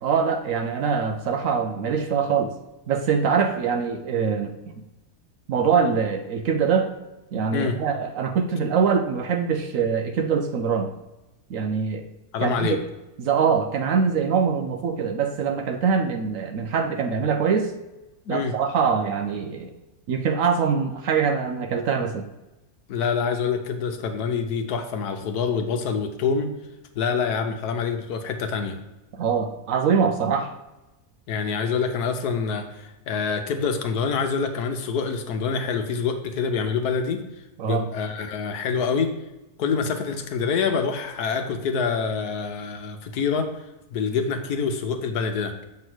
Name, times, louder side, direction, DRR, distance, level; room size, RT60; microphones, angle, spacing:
voice 1, 0.0-2.5 2.9-4.7 5.5-6.9 7.3-10.9 11.5-12.1 12.4-12.8 13.2-17.7 18.3-19.8 20.1-22.3 29.1-30.5 37.6-37.9, right 6 dB, 65° right, 6 dB, 0.9 m, -23 dB
voice 2, 12.3-12.8 18.3-18.5 22.9-26.5 26.9-28.8 31.3-37.2 37.6-39.1 39.6-43.5 43.9-45.5, left 5 dB, 80° left, 6 dB, 1.3 m, -26 dB
7.1 x 3.2 x 6.1 m, 1.0 s
omnidirectional pair, 1.7 m